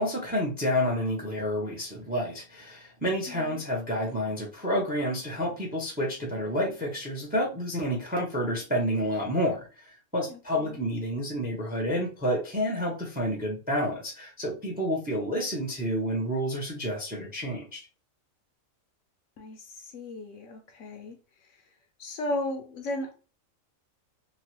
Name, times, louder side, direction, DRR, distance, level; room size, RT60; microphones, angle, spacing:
voice 1, 0.0-17.8, equal, 10° right, 0.6 m, -29 dB
voice 2, 3.3-3.6 10.3-10.8 19.4-21.6 22.0-23.3, left 1 dB, 70° left, 0.9 m, -36 dB
2.9 x 2.2 x 3.0 m
omnidirectional pair, 1.4 m